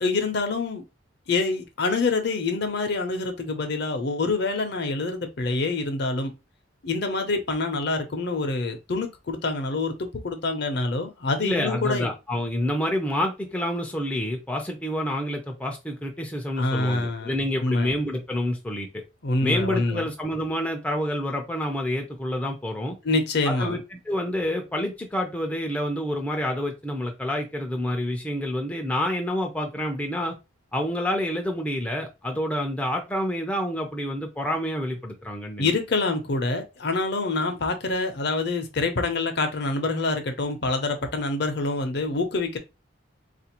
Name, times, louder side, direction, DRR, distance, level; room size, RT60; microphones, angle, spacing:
voice 1, 0.0-0.8 1.3-6.3 6.8-12.1 16.6-17.9 19.2-20.1 23.0-23.8 35.6-42.6, left 3 dB, 50° left, 0.6 m, -26 dB
voice 2, 11.4-18.9 19.4-23.0 23.4-23.8 24.1-30.4 30.7-35.7, left 1 dB, 5° left, 0.4 m, -28 dB
3.8 x 2.5 x 2.8 m
head